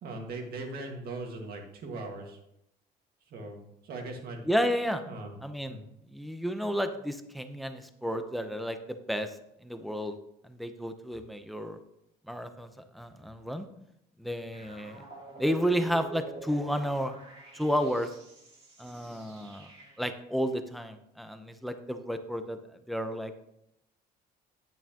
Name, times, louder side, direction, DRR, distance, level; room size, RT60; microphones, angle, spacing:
voice 1, 0.0-2.4 3.3-4.5 5.1-5.4 5.6-5.8, right 2 dB, 65° right, 2 dB, 1.8 m, -40 dB
voice 2, 4.5-5.0 5.4-5.8 6.1-9.4 9.6-10.2 10.4-11.8 12.3-13.7 14.2-15.0 15.4-17.2 17.5-18.1 18.8-19.7 20.0-22.6 22.9-23.4, equal, ahead, 8 dB, 0.7 m, -32 dB
sound 1, 14.5-20.2, right 2 dB, 35° right, 2.4 m, -47 dB
9.2 x 8.3 x 2.9 m, 0.80 s
cardioid pair, 110°, 17 cm